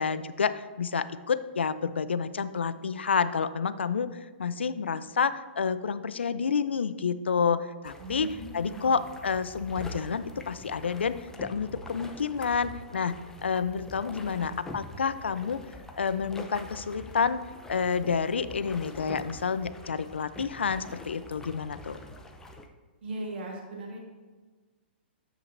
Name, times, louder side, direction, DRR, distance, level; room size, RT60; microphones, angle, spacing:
voice 1, 0.0-4.1 4.4-8.3 8.5-13.1 13.4-15.6 16.0-17.4 17.7-22.0, left 6 dB, 85° left, 14 dB, 0.4 m, -29 dB
sound 1, 7.8-22.7, left 1 dB, 10° left, 0.6 m, -45 dB
voice 2, 8.0-9.0 14.3-15.1 23.0-24.0, right 1 dB, 70° right, 0 dB, 1.7 m, -40 dB
9.7 x 7.3 x 2.6 m, 1.3 s
hypercardioid pair, 125°, 6 cm